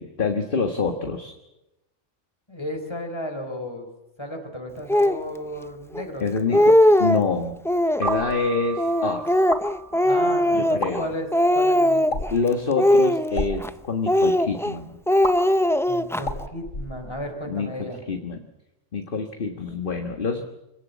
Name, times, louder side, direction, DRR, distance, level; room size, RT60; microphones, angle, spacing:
voice 1, 0.0-1.3 6.2-7.6 8.0-9.2 10.5-11.1 12.3-15.0 17.4-17.7 18.1-18.4 18.9-20.4, left 4 dB, 45° left, 5 dB, 1.7 m, -26 dB
voice 2, 2.5-3.9 4.2-6.7 9.9-12.2 15.9-18.0, left 1 dB, 20° left, 4 dB, 4.1 m, -34 dB
Speech, 4.9-5.2 5.9-6.0 6.4-7.3 7.6-8.3 8.8-11.1 11.3-12.3 12.8-13.7 14.1-14.7 15.1-16.2, left 1 dB, 5° left, 0.4 m, -20 dB
sound 1, 8.0-8.4 9.3-9.7 10.7-10.9 12.1-12.4 13.2-13.5 15.2-15.3 16.2-17.4, left 1 dB, 85° left, 3.8 m, -30 dB
Keyboard (musical), 8.0-10.6, right 6 dB, 45° right, 1.2 m, -36 dB
25.0 x 17.5 x 8.4 m, 0.94 s
omnidirectional pair, 1.3 m